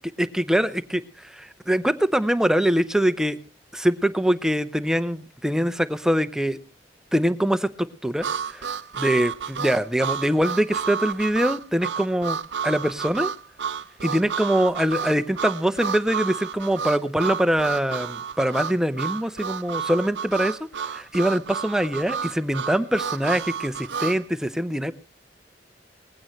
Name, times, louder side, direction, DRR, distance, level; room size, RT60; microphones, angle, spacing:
voice 1, 0.3-3.4 3.7-6.6 7.1-8.7 9.0-12.4 12.6-13.3 14.0-24.9, equal, 5° right, 11 dB, 0.7 m, -23 dB
Harmonica, 8.2-24.2, right 7 dB, 90° right, 0.6 m, -31 dB
20.0 x 15.5 x 3.1 m, 0.36 s
head